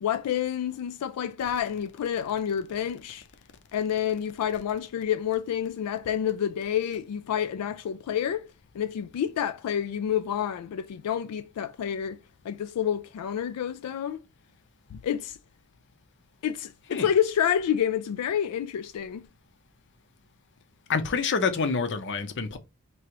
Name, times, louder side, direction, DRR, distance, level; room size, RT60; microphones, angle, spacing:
voice 1, 0.0-3.3 3.7-8.5 8.7-12.2 12.4-14.2 14.9-15.4 16.4-19.3, left 9 dB, 90° left, 0.3 m, -28 dB
voice 2, 20.9-22.6, left 5 dB, 55° left, 0.7 m, -27 dB
4.6 x 2.9 x 3.0 m
head